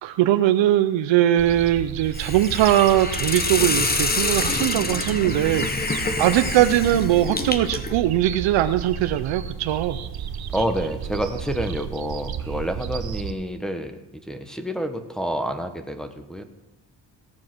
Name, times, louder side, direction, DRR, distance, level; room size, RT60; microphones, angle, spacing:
voice 1, 0.0-10.0, right 13 dB, 80° right, 10 dB, 0.7 m, -21 dB
sound 1, 1.4-13.3, right 8 dB, 55° right, 1.0 m, -33 dB
Hiss, 2.1-8.0, left 3 dB, 20° left, 1.2 m, -27 dB
voice 2, 10.5-16.4, equal, ahead, 5 dB, 1.3 m, -28 dB
17.0 x 7.4 x 6.1 m, 1.0 s
cardioid pair, 100°, 43 cm